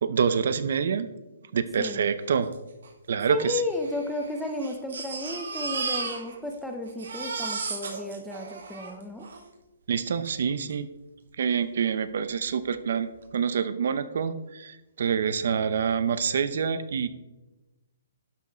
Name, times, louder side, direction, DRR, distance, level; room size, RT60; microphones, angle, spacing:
voice 1, 0.0-1.1 1.5-2.5 3.1-3.6 9.9-10.9 11.4-17.1, right 6 dB, 50° right, 13 dB, 0.7 m, -26 dB
voice 2, 1.8-2.1 3.3-9.3, left 1 dB, ahead, 4 dB, 0.5 m, -33 dB
Crying sobbing, 2.5-2.6 2.8-2.9 3.7-6.6 6.8-9.4 10.2-10.3 10.7-10.8, right 4 dB, 80° right, 3.0 m, -34 dB
11.5 x 6.2 x 4.4 m, 1.1 s
hypercardioid pair, 175°, 0 cm